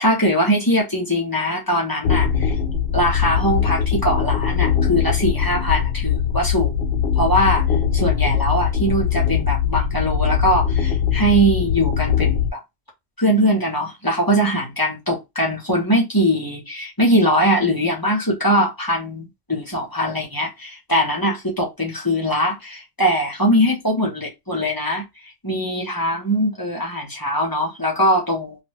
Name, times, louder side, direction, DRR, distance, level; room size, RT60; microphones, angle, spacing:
voice 1, 0.0-2.5 2.9-6.7 7.2-7.6 7.9-12.6 13.2-25.1 25.4-28.6, equal, 20° left, 0.8 m, -21 dB
sound 1, 2.0-12.5, left 8 dB, 70° left, 0.8 m, -21 dB
2.4 x 2.2 x 3.2 m
omnidirectional pair, 1.1 m